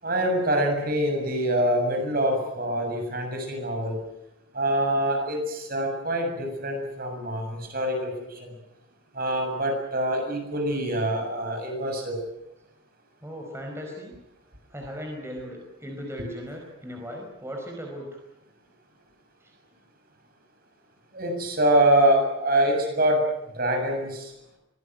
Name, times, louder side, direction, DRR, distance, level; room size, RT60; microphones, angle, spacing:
voice 1, 0.0-4.0 4.5-8.5 9.1-12.2 21.1-23.2 23.5-24.3, right 1 dB, 45° right, 3 dB, 7.2 m, -25 dB
voice 2, 13.2-14.2 14.7-18.1, equal, 15° right, 1 dB, 5.0 m, -37 dB
25.0 x 19.0 x 9.3 m, 0.88 s
head